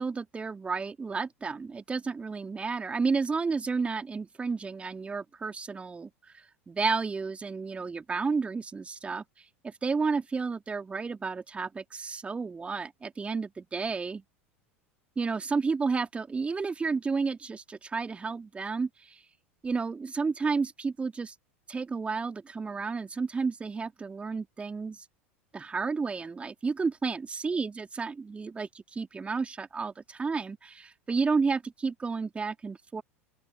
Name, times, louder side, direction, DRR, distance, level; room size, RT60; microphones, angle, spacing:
voice 1, 0.0-6.1 6.7-9.2 9.6-14.2 15.2-19.2 19.6-21.3 21.7-25.0 25.5-33.0, right 4 dB, 15° right, 4.0 m, -31 dB
open air
figure-of-eight pair, 80°, 7 cm